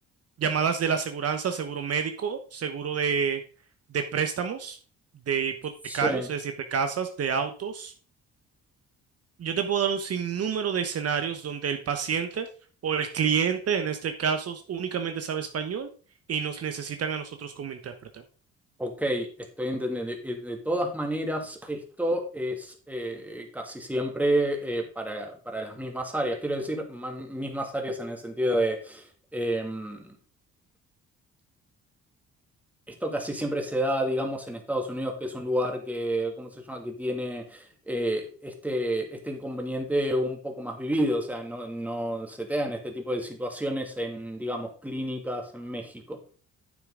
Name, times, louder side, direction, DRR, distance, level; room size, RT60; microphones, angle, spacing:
voice 1, 0.4-3.4 3.9-4.8 5.3-7.9 9.4-12.5 12.8-15.9 16.3-18.2, right 7 dB, 55° right, 7 dB, 1.0 m, -28 dB
voice 2, 5.8-6.3 18.8-19.3 19.6-30.1 32.9-46.4, equal, 5° right, 2 dB, 2.2 m, -30 dB
9.5 x 7.0 x 3.8 m, 0.39 s
cardioid pair, 90°, 30 cm